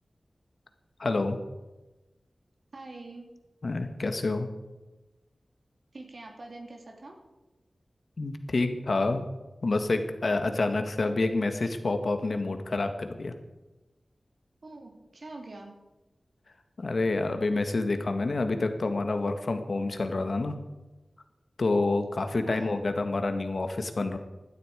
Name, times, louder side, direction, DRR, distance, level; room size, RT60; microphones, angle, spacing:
voice 1, 1.0-1.4 3.6-4.5 8.2-9.2 9.6-13.3 16.8-20.5 21.6-24.2, left 3 dB, 65° left, 7 dB, 1.7 m, -28 dB
voice 2, 2.7-3.3 5.9-7.2 14.6-15.7 22.4-22.8, right 2 dB, 65° right, 2 dB, 3.2 m, -44 dB
16.5 x 11.5 x 5.1 m, 1.1 s
wide cardioid pair, 75°, 0 cm